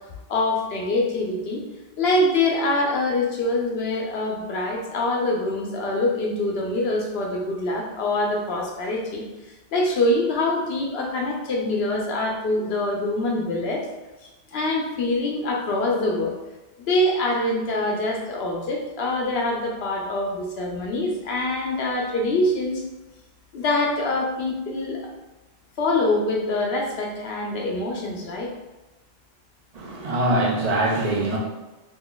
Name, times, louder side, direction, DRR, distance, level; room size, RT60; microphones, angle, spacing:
voice 1, 0.3-1.6 2.0-9.2 9.7-13.9 14.2-16.3 16.9-22.8 23.5-25.0 25.8-28.5, left 2 dB, 75° left, 0 dB, 0.9 m, -24 dB
voice 2, 29.7-31.4, right 1 dB, 45° right, -1 dB, 0.6 m, -23 dB
2.9 x 2.3 x 3.8 m, 1.1 s
omnidirectional pair, 1.1 m